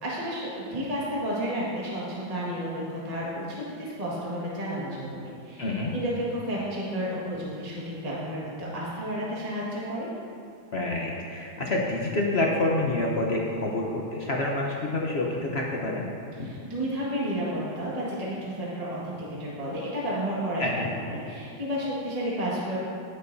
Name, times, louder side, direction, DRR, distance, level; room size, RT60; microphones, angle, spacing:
voice 1, 0.0-10.1 16.4-20.6 21.0-22.8, equal, 20° right, -6 dB, 1.6 m, -32 dB
voice 2, 5.6-5.9 10.7-16.1 20.6-20.9, left 2 dB, 50° left, -1 dB, 0.8 m, -27 dB
17.0 x 6.7 x 2.7 m, 2.4 s
omnidirectional pair, 2.1 m